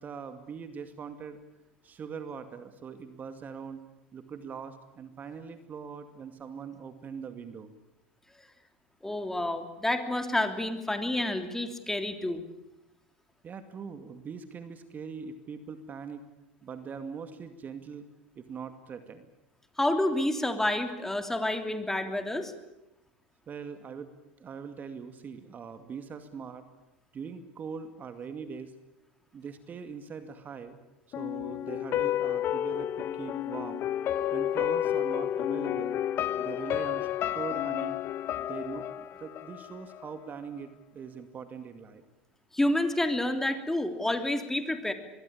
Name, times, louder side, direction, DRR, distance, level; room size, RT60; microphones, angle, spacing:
voice 1, 0.0-1.4 1.8-3.8 4.1-7.7 13.4-16.2 16.6-18.1 18.4-19.3 23.5-24.1 24.4-26.7 27.1-28.7 29.3-30.7 31.2-33.8 34.3-36.0 36.4-37.1 37.3-38.0 38.4-42.0, right 6 dB, 30° right, 9 dB, 2.3 m, -41 dB
voice 2, 9.0-12.4 19.8-22.5 42.5-44.9, left 1 dB, 5° left, 7 dB, 3.2 m, -29 dB
sound 1, 31.1-40.1 40.4-40.5, left 11 dB, 40° left, 1.0 m, -31 dB
25.0 x 22.0 x 8.7 m, 0.94 s
hypercardioid pair, 85°, 6 cm